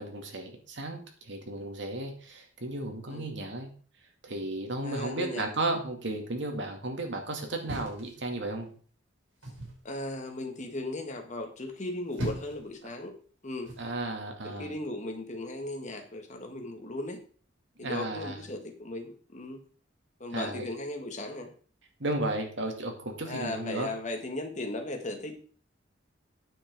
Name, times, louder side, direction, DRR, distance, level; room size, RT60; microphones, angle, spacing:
voice 1, 0.0-3.7 4.2-8.7 13.8-14.8 17.8-18.4 20.3-20.7 22.0-23.9, right 2 dB, 65° right, 3 dB, 2.2 m, -34 dB
voice 2, 4.8-5.5 9.9-13.1 13.4-13.7 14.6-17.2 17.8-19.6 20.2-21.5 23.3-25.4, left 2 dB, 40° left, 4 dB, 1.8 m, -37 dB
sound 1, 7.6-8.7 9.4-9.8 11.8-12.7 13.6-13.9, right 1 dB, 85° right, 5.4 m, -38 dB
9.1 x 7.6 x 4.7 m, 0.43 s
head